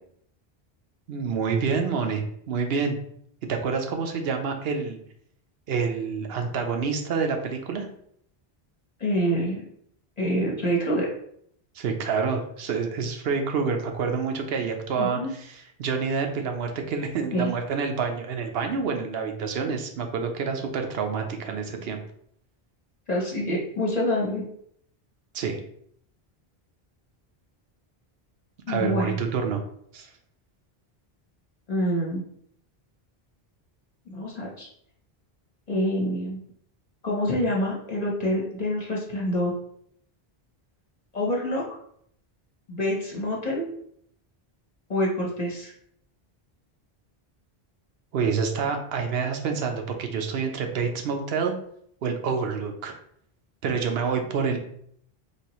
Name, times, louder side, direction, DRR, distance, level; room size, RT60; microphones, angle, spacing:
voice 1, 1.1-3.0 3.5-5.0 5.7-7.9 11.7-22.0 25.3-25.6 28.7-29.6 29.9-30.1 48.1-51.5 52.0-52.9 53.6-54.6, right 5 dB, 75° right, 4 dB, 0.9 m, -27 dB
voice 2, 9.0-9.6 10.2-11.1 15.0-15.3 17.3-17.5 23.1-24.4 28.7-29.2 31.7-32.2 34.1-34.7 35.7-36.4 37.0-39.5 41.1-41.8 42.7-43.7 44.9-45.7, equal, 45° left, -3 dB, 0.9 m, -26 dB
4.7 x 2.9 x 3.0 m, 0.68 s
omnidirectional pair, 1.0 m